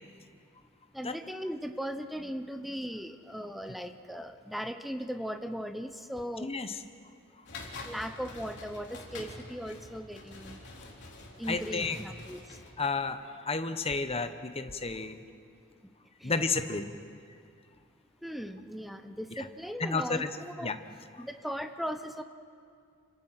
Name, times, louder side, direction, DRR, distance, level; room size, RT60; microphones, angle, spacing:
voice 1, 0.9-6.5 7.8-10.6 11.4-12.4 16.2-16.3 18.2-20.7 21.2-22.2, equal, ahead, 8 dB, 0.8 m, -38 dB
voice 2, 6.4-6.8 7.4-7.7 11.5-12.0 12.8-15.2 16.2-16.9 19.4-19.5 19.8-20.3 20.6-20.8 21.2-21.3, left 4 dB, 30° left, 9 dB, 1.1 m, -32 dB
sound 1, 7.5-12.7, left 2 dB, 55° left, 3.8 m, -46 dB
29.5 x 25.5 x 5.9 m, 2.3 s
head